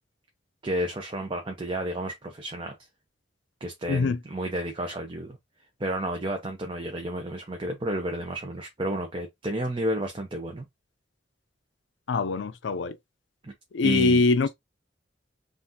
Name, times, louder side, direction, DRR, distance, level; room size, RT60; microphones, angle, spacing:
voice 1, 0.6-2.7 3.6-5.4 5.8-10.6 13.4-13.5 13.8-14.5, right 1 dB, 30° right, 0.7 m, -31 dB
voice 2, 3.9-4.2 12.1-13.0 13.7-14.5, left 4 dB, 80° left, 0.5 m, -23 dB
5.7 x 2.5 x 2.7 m
head